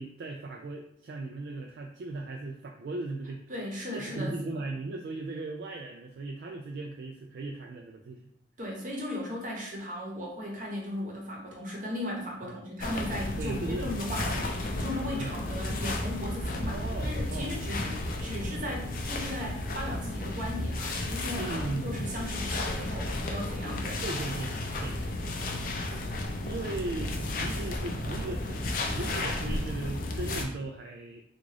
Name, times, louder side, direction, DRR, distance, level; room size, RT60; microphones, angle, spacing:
voice 1, 0.0-3.4 3.9-8.3 12.4-12.6 13.4-13.9 14.3-14.5 15.2-15.4 16.7-17.8 21.4-22.1 24.0-24.5 24.8-25.0 26.4-31.2, right 2 dB, 65° right, 1 dB, 0.3 m, -37 dB
voice 2, 3.5-4.3 8.6-24.0, left 1 dB, 45° right, -1 dB, 0.9 m, -37 dB
sound 1, 12.8-30.4, left 2 dB, 50° left, 0.5 m, -33 dB
3.6 x 2.4 x 3.2 m, 0.70 s
head